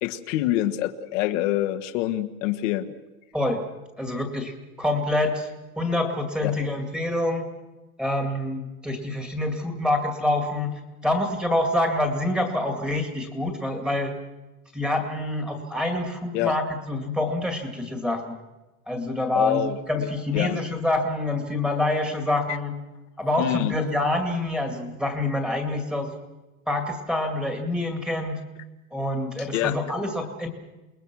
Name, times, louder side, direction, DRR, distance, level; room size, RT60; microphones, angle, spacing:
voice 1, 0.0-2.9 6.4-6.5 16.3-16.5 19.3-20.6 23.4-23.7 29.4-29.8, left 14 dB, 65° left, 7 dB, 1.5 m, -26 dB
voice 2, 3.3-3.6 4.0-5.5 5.8-7.5 8.0-14.1 14.7-18.4 18.9-22.7 23.2-26.1 26.7-28.4 28.9-30.5, left 1 dB, ahead, 3 dB, 2.3 m, -26 dB
28.0 x 20.5 x 6.2 m, 1.1 s
supercardioid pair, 170°, 40 cm